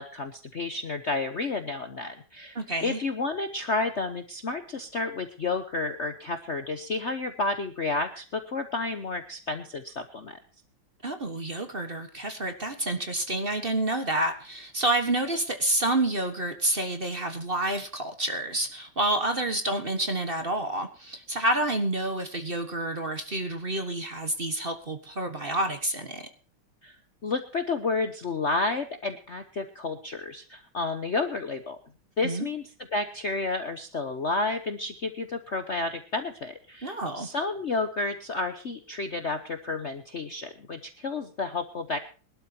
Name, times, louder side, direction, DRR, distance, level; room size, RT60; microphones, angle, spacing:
voice 1, 0.0-10.4 26.8-27.0 27.2-31.8 32.2-32.6 32.9-42.0, left 3 dB, 45° left, 8 dB, 1.0 m, -31 dB
voice 2, 2.5-3.0 11.0-26.3 32.2-32.5 36.8-37.3, right 1 dB, 30° right, 7 dB, 1.5 m, -29 dB
23.0 x 12.5 x 2.9 m, 0.36 s
omnidirectional pair, 2.3 m